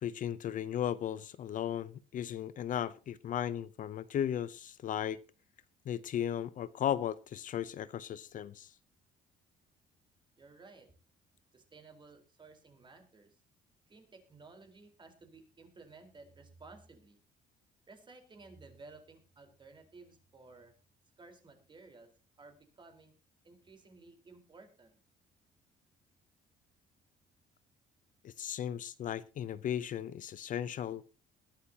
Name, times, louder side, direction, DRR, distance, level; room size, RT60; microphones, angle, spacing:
voice 1, 0.0-5.2 5.9-8.7 28.2-31.0, left 10 dB, 50° left, 0.6 m, -36 dB
voice 2, 10.4-10.9 11.5-13.4 13.9-17.2 17.9-20.7 21.2-22.1 22.4-23.1 23.4-25.0, right 3 dB, 30° right, 4.2 m, -56 dB
21.0 x 11.5 x 2.8 m
cardioid pair, 110°, 17 cm